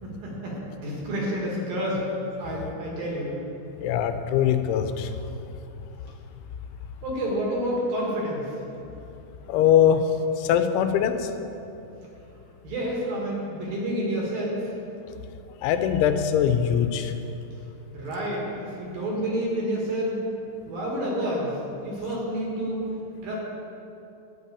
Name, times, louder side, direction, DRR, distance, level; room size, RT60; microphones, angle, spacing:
voice 1, 0.0-2.0 2.4-3.3 7.0-8.6 12.6-14.7 17.9-20.2 20.6-21.5 21.8-22.8 23.2-23.4, equal, 60° right, -3 dB, 3.1 m, -29 dB
voice 2, 3.8-5.2 9.5-10.0 10.4-11.3 15.6-17.1, left 9 dB, 85° left, 8 dB, 3.0 m, -22 dB
11.5 x 5.4 x 8.3 m, 2.8 s
omnidirectional pair, 5.3 m